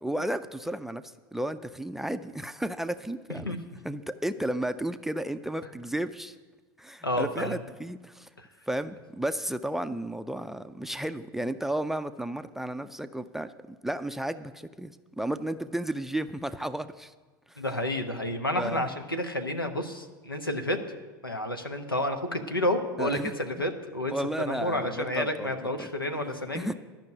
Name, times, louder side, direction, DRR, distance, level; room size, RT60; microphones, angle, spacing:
voice 1, 0.0-3.5 3.8-6.3 6.8-8.3 8.7-17.1 17.5-17.6 18.6-18.9 23.0-23.3 24.1-25.9 26.5-26.7, right 1 dB, 5° right, 10 dB, 0.4 m, -33 dB
voice 2, 7.0-7.6 8.4-8.5 17.6-20.8 21.2-26.7, left 1 dB, 90° left, 6 dB, 1.0 m, -30 dB
12.0 x 5.9 x 9.1 m, 1.3 s
figure-of-eight pair, 80°, 11 cm